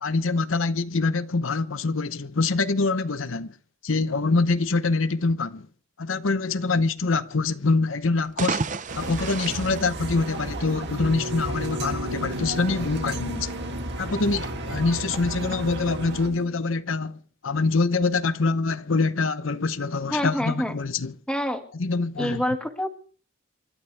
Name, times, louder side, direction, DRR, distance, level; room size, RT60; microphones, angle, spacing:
voice 1, 0.0-3.6 3.8-5.7 6.0-8.6 8.9-13.5 14.0-21.2 21.7-22.4, left 3 dB, 75° left, 0.8 m, -25 dB
sound 1, 8.2-10.8, right 4 dB, 40° right, 0.7 m, -32 dB
sound 2, 8.9-16.3, right 2 dB, 55° right, 1.9 m, -33 dB
sound 3, 11.0-16.5, left 1 dB, 75° right, 4.6 m, -36 dB
voice 2, 20.1-20.7 21.3-21.6 22.2-22.9, equal, 5° left, 1.9 m, -26 dB
28.5 x 12.5 x 3.4 m
head